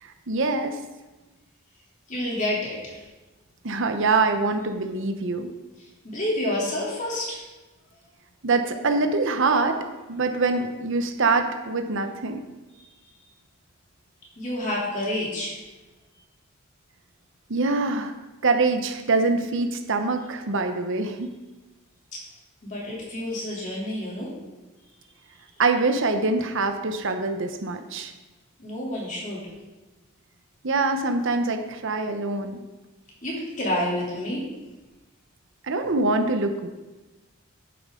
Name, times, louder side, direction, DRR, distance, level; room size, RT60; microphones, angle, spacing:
voice 1, 0.0-0.8 3.6-5.5 8.4-9.8 10.1-12.4 17.5-18.1 18.4-21.3 25.6-28.1 30.6-32.6 35.6-36.7, right 3 dB, 65° right, 6 dB, 0.8 m, -24 dB
voice 2, 2.1-3.0 6.0-7.4 12.8-12.9 14.4-15.6 22.6-24.3 28.6-29.4 33.2-34.4, left 1 dB, 35° left, -4 dB, 3.0 m, -29 dB
9.7 x 8.6 x 3.8 m, 1.1 s
head